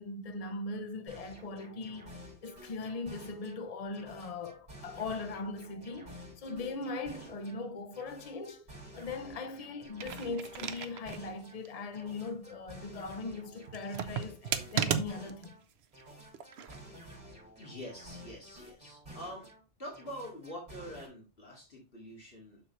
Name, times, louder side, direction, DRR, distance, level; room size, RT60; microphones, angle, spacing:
voice 1, 0.0-15.5, left 3 dB, 40° left, 0.8 m, -40 dB
sound 1, 1.1-3.6 3.9-7.6 7.9-11.6 11.9-15.6 15.9-19.6 19.9-21.0, equal, 40° right, 4.9 m, -51 dB
sound 2, 9.8-11.2 11.6-11.7 13.7-15.4 16.3-16.8, right 8 dB, 70° right, 0.9 m, -34 dB
voice 2, 17.6-19.5 19.8-22.6, equal, 55° left, 2.5 m, -45 dB
6.9 x 6.3 x 3.1 m
omnidirectional pair, 1.1 m